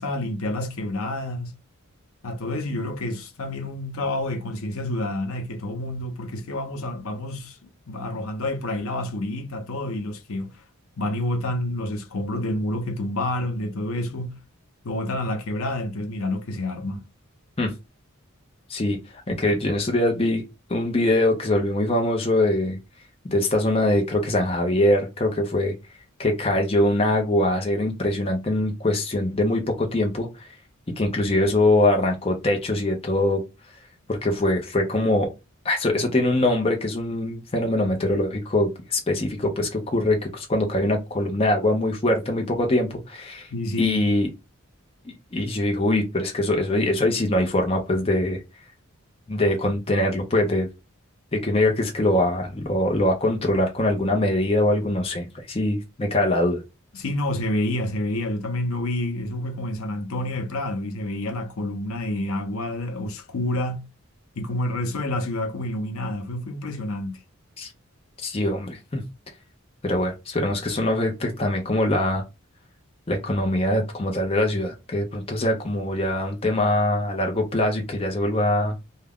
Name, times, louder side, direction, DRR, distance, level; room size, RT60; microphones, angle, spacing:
voice 1, 0.0-1.6 2.2-10.5 11.0-14.4 14.8-17.0 43.5-44.0 56.9-63.9 64.4-67.2, left 1 dB, 75° left, 0.6 m, -28 dB
voice 2, 19.3-20.4 20.7-22.8 23.2-25.7 26.2-30.3 31.0-33.4 34.1-35.3 35.6-43.5 43.8-44.3 45.1-48.4 49.3-50.7 51.3-56.6 67.6-67.7 68.2-69.0 69.8-72.2 73.1-78.7, left 1 dB, 25° left, 0.5 m, -23 dB
2.3 x 2.1 x 3.4 m
head